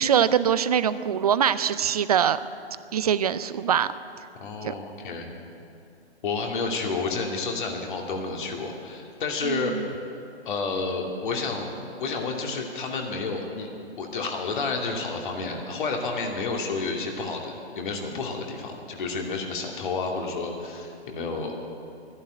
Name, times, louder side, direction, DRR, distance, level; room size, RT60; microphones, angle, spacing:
voice 1, 0.0-2.4 2.9-3.9 4.6-4.7 9.4-9.8, right 8 dB, 35° right, 15 dB, 0.5 m, -23 dB
voice 2, 4.4-5.3 6.2-9.7 10.4-11.7 12.0-13.7 14.0-21.5, left 4 dB, 50° left, 2 dB, 2.6 m, -30 dB
12.5 x 11.5 x 9.3 m, 2.5 s
figure-of-eight pair, 140°, 33 cm